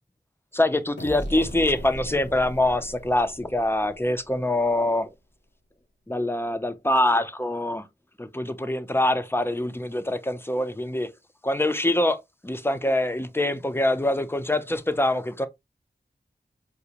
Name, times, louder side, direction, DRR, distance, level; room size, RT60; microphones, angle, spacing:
voice 1, 0.5-5.1 6.1-7.8 8.2-11.1 11.4-12.2 12.4-15.5, left 1 dB, 15° left, 0.5 m, -24 dB
sound 1, 1.0-4.6, equal, 85° left, 1.0 m, -38 dB
4.9 x 2.1 x 2.7 m
wide cardioid pair, 50°, 18 cm